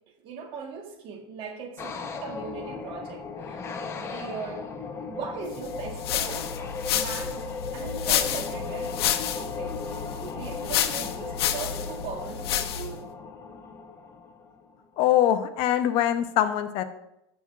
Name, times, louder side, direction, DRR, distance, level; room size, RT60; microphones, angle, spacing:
voice 1, 0.2-3.7 4.0-4.7 5.1-6.5 6.9-9.8 10.2-13.1, right 5 dB, 40° right, 4 dB, 1.4 m, -39 dB
sound 1, 1.8-14.8, left 4 dB, 20° left, 0.9 m, -37 dB
sound 2, 5.6-13.0, left 10 dB, 80° left, 0.8 m, -30 dB
voice 2, 15.0-16.8, left 11 dB, 45° left, 9 dB, 0.7 m, -23 dB
16.5 x 5.9 x 2.4 m, 0.86 s
supercardioid pair, 135°, 13 cm